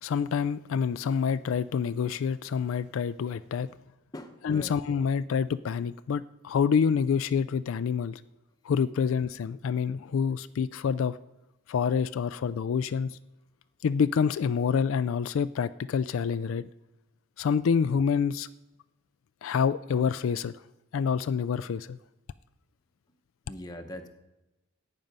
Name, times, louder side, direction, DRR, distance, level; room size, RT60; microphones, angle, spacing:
voice 1, 0.0-3.7 4.4-8.2 8.6-11.2 11.7-13.2 13.8-16.7 17.4-18.5 19.4-20.5 20.9-22.0, left 6 dB, 75° left, 0.3 m, -27 dB
voice 2, 4.1-4.8 23.5-24.1, left 1 dB, 20° left, 1.0 m, -41 dB
14.0 x 9.1 x 5.4 m
head